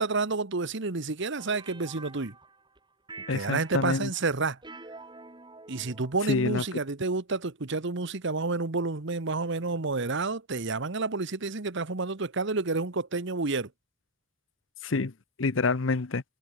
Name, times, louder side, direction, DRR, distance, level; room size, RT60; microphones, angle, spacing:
voice 1, 0.0-2.3 3.3-4.6 5.7-13.7, right 3 dB, 65° right, 1.3 m, -30 dB
sound 1, 1.4-2.8 3.1-6.8, right 3 dB, 25° right, 5.9 m, -48 dB
voice 2, 3.3-4.1 6.3-6.6 14.8-15.1 15.4-16.2, left 3 dB, 70° left, 0.8 m, -27 dB
head